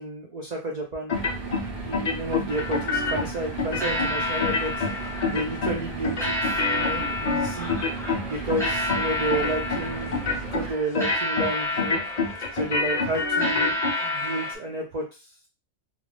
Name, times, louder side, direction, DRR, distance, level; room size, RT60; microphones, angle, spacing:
voice 1, 0.0-7.8 8.3-12.0 12.5-15.3, right 2 dB, 80° right, -1 dB, 0.3 m, -31 dB
sound 1, 1.1-1.6 1.9-3.3 3.6-4.1 4.4-4.9 5.2-5.8 6.0-8.2 8.5-9.0 9.3-9.8 10.1-10.6 10.9-11.5 11.8-13.9, left 4 dB, 75° left, 0.3 m, -26 dB
sound 2, 1.1-10.7, right 3 dB, 55° right, 0.7 m, -35 dB
sound 3, 2.5-14.5, left 1 dB, 5° left, 0.4 m, -31 dB
2.4 x 2.3 x 3.2 m, 0.30 s
omnidirectional pair, 1.5 m